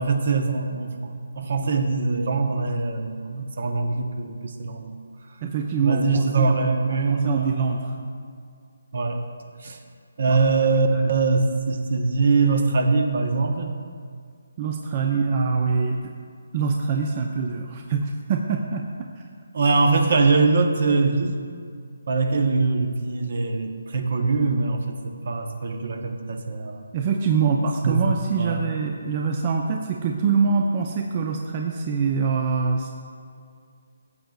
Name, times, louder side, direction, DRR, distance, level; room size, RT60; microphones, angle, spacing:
voice 1, 0.0-4.9 5.8-7.6 8.0-8.1 8.9-9.3 9.6-9.8 10.2-13.7 19.5-21.4 22.1-26.8 27.8-28.6, right 4 dB, 60° right, 5 dB, 0.9 m, -23 dB
voice 2, 5.4-7.9 10.3-10.4 10.9-11.1 14.6-16.0 16.5-19.2 26.9-33.0, right 5 dB, 35° right, 2 dB, 0.6 m, -24 dB
14.5 x 7.7 x 2.4 m, 2.2 s
figure-of-eight pair, 150°, 0 cm